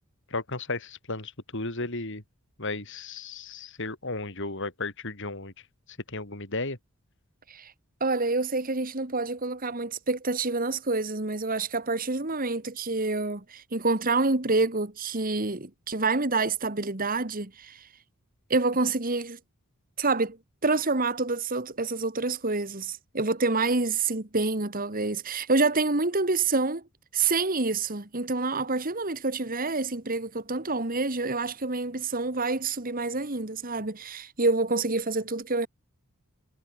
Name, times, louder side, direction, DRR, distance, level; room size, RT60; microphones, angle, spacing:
voice 1, 0.3-2.2 2.6-5.5 6.1-6.8, left 3 dB, 55° left, 4.3 m, -34 dB
voice 2, 8.0-17.8 18.5-19.4 20.0-20.4 20.6-26.8 27.1-35.7, right 3 dB, 40° right, 2.0 m, -27 dB
head